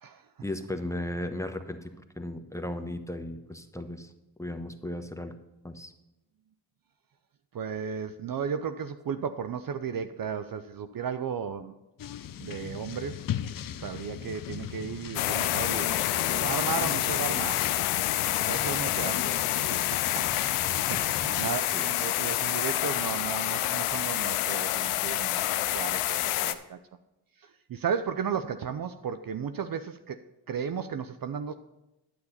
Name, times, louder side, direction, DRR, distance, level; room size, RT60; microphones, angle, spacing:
voice 1, 0.4-1.9 2.2-4.1 4.4-5.3 5.6-5.9 19.0-19.1 21.7-21.9, left 1 dB, 5° left, 6 dB, 1.1 m, -36 dB
voice 2, 7.5-11.7 12.4-13.2 13.8-15.9 16.3-17.7 18.5-19.2 19.9-20.3 20.9-26.8 27.4-31.5, right 7 dB, 45° right, 10 dB, 0.6 m, -34 dB
sound 1, 12.0-21.5, left 10 dB, 45° left, 0.6 m, -38 dB
sound 2, 15.1-26.5, left 14 dB, 90° left, 0.6 m, -28 dB
9.6 x 8.4 x 4.2 m, 0.95 s
supercardioid pair, 40°, 49 cm